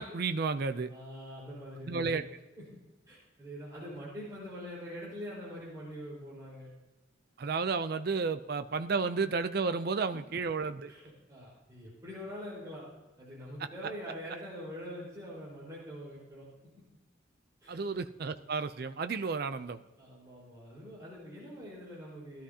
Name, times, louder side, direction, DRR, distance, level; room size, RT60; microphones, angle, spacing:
voice 1, 0.0-0.9 1.9-2.3 7.4-10.9 17.7-19.8, right 4 dB, 50° right, 10 dB, 0.5 m, -32 dB
voice 2, 0.9-2.2 2.6-2.7 3.1-6.7 10.1-10.2 10.9-11.0 11.3-12.8 13.2-16.5 17.6-17.8 20.0-22.4, equal, 15° right, -7 dB, 4.7 m, -44 dB
17.5 x 12.5 x 2.8 m, 1.1 s
head